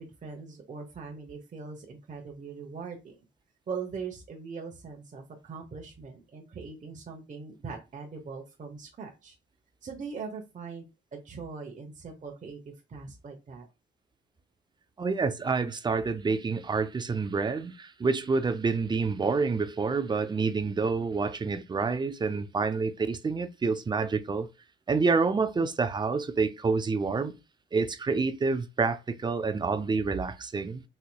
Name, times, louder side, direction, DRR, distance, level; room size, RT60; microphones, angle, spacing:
voice 1, 0.0-3.2 3.7-9.3 9.8-13.7, right 5 dB, 40° right, 0.9 m, -41 dB
voice 2, 15.0-24.5 24.9-27.3 27.7-30.8, right 4 dB, 20° right, 0.5 m, -28 dB
4.2 x 2.8 x 2.2 m
cardioid pair, 90°, 20 cm